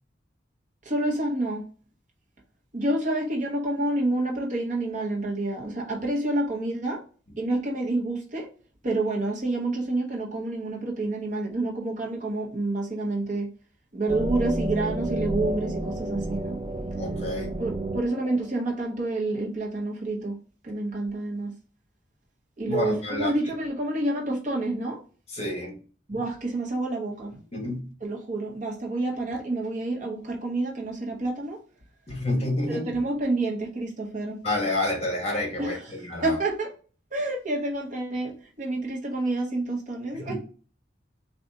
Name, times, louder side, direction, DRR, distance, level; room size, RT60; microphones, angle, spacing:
voice 1, 0.8-1.6 2.7-7.0 7.4-8.5 8.8-13.5 13.9-16.6 17.6-20.4 20.6-21.5 22.6-25.0 26.1-27.4 28.0-31.6 32.7-34.4 35.6-36.0 36.2-36.7 37.1-40.3, right 2 dB, 45° right, 0.9 m, -28 dB
sound 1, 14.1-18.8, right 1 dB, 25° right, 0.3 m, -31 dB
voice 2, 16.9-17.5 22.7-23.3 25.3-25.8 26.1-26.2 27.5-27.9 32.1-32.9 34.4-36.4 40.1-40.3, left 1 dB, 35° left, 1.3 m, -29 dB
4.0 x 2.4 x 3.6 m
head